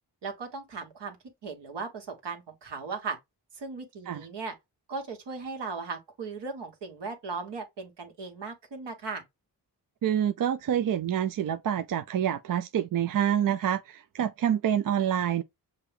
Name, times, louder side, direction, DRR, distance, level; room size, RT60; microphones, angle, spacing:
voice 1, 0.2-1.2 1.4-3.2 3.5-4.5 4.9-9.2, right 4 dB, 75° right, 1.5 m, -37 dB
voice 2, 10.0-15.4, right 9 dB, 50° right, 0.5 m, -27 dB
6.4 x 2.3 x 3.4 m
cardioid pair, 50°, 42 cm